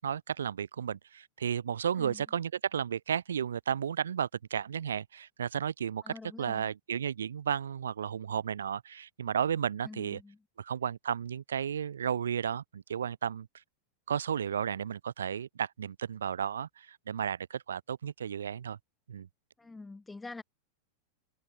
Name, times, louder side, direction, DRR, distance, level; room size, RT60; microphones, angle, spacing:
voice 1, 0.0-10.2 10.6-13.5 14.1-18.8 19.1-19.3, right 8 dB, 65° right, 6.0 m, -33 dB
voice 2, 6.0-6.7 9.8-10.4 19.6-20.4, left 3 dB, 10° left, 8.0 m, -46 dB
figure-of-eight pair, 90°, 0 cm